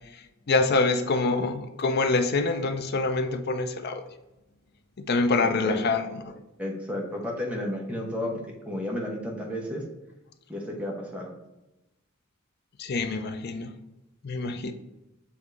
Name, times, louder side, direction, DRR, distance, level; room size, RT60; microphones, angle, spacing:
voice 1, 0.1-4.0 5.0-6.3 12.8-13.7 14.2-14.7, left 3 dB, 50° left, 8 dB, 0.5 m, -26 dB
voice 2, 5.4-5.8 6.6-9.9 10.5-11.3, left 1 dB, 5° right, -1 dB, 1.1 m, -32 dB
7.1 x 2.8 x 4.7 m, 0.95 s
head